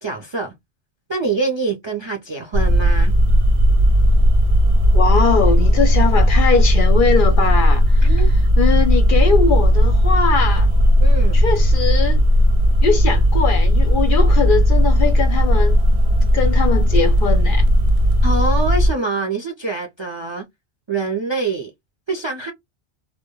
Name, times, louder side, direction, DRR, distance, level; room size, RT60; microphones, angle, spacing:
voice 1, 0.0-0.5 1.1-3.1 8.0-8.3 11.0-11.5 18.2-20.4 20.9-21.7 22.1-22.5, right 3 dB, 45° right, 0.4 m, -25 dB
sound 1, 2.5-18.9, equal, 65° right, 0.7 m, -15 dB
voice 2, 4.9-8.2 8.6-10.7 11.3-12.2 12.8-15.8 16.3-17.7, left 5 dB, 60° left, 0.6 m, -21 dB
2.1 x 2.1 x 2.9 m
omnidirectional pair, 1.1 m